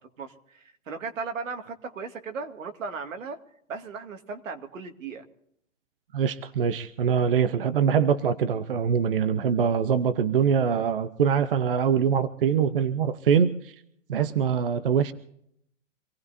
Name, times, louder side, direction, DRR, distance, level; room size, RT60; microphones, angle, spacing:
voice 1, 0.0-3.4 3.7-5.2, right 4 dB, 80° right, 6 dB, 2.2 m, -36 dB
voice 2, 6.1-13.8 14.1-15.1, right 7 dB, 45° right, 12 dB, 0.8 m, -23 dB
26.5 x 18.0 x 2.7 m, 0.72 s
hypercardioid pair, 175°, 38 cm